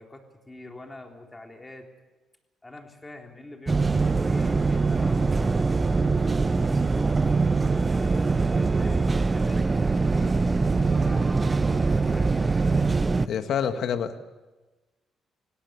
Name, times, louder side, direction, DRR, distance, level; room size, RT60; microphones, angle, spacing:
voice 1, 0.0-1.9 2.6-5.6 6.3-12.3 13.6-14.0, left 2 dB, 15° left, 2 dB, 3.7 m, -45 dB
sound 1, 3.7-13.3, right 4 dB, 25° right, 0.6 m, -23 dB
voice 2, 13.3-14.2, left 8 dB, 70° left, 8 dB, 1.6 m, -27 dB
18.5 x 17.5 x 9.7 m, 1.2 s
cardioid pair, 90°, 0 cm